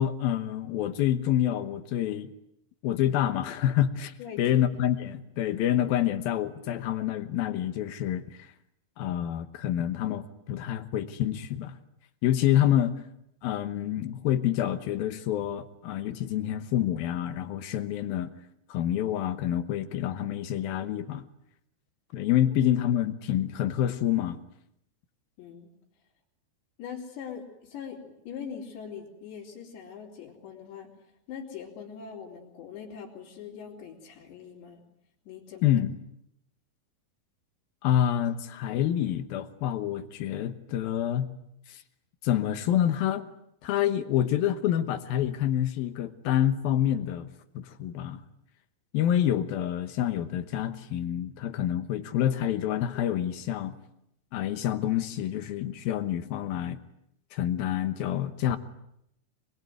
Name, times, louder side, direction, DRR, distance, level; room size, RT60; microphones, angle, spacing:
voice 1, 0.0-2.3 2.8-8.5 9.0-11.7 12.2-13.0 13.4-18.3 18.7-21.2 22.1-24.4 35.6-36.0 37.8-41.3 41.7-41.8 42.2-43.3 43.6-47.3 47.5-48.2 48.9-53.8 54.3-56.8 57.3-58.6, left 11 dB, 70° left, 10 dB, 2.7 m, -27 dB
voice 2, 25.4-25.7 26.8-30.9 31.3-34.8 35.3-35.7, left 7 dB, 85° left, -4 dB, 5.6 m, -42 dB
25.5 x 22.0 x 9.3 m, 0.78 s
omnidirectional pair, 4.9 m